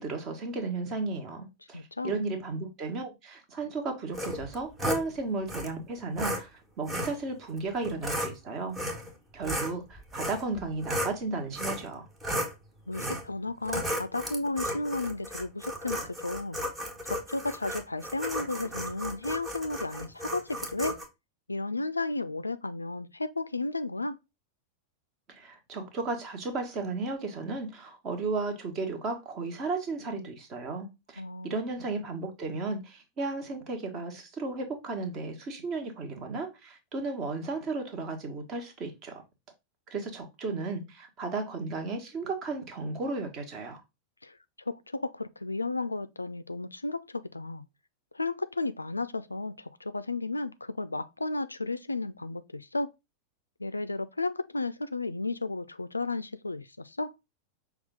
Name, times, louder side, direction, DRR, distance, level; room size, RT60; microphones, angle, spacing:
voice 1, 0.0-8.8 9.3-12.1 25.3-39.2 39.9-43.8, right 3 dB, 35° right, 1.2 m, -34 dB
voice 2, 1.7-2.2 12.9-16.6 17.0-21.0 21.5-24.2 31.2-31.6 44.2-44.4 44.7-47.6 48.1-52.9 53.6-57.1, left 2 dB, 80° left, 0.3 m, -33 dB
sound 1, 4.1-5.0 5.5-5.7 6.2-6.4 6.9-7.2 7.8-8.3 8.7-9.1 9.4-11.2 11.6-11.9 12.2-12.5 12.9-13.3 13.7-21.1, equal, 15° right, 1.2 m, -34 dB
5.5 x 2.4 x 3.6 m
figure-of-eight pair, 90°, 0 cm